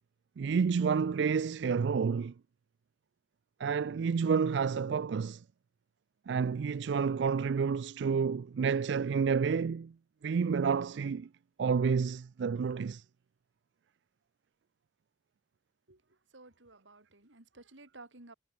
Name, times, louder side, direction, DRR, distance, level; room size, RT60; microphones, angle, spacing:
voice 1, 0.4-2.3 3.6-5.4 6.3-9.9 10.2-11.3 11.6-13.0, right 6 dB, 65° right, 0.4 m, -29 dB
voice 2, 15.9-18.3, right 2 dB, 85° right, 3.6 m, -55 dB
head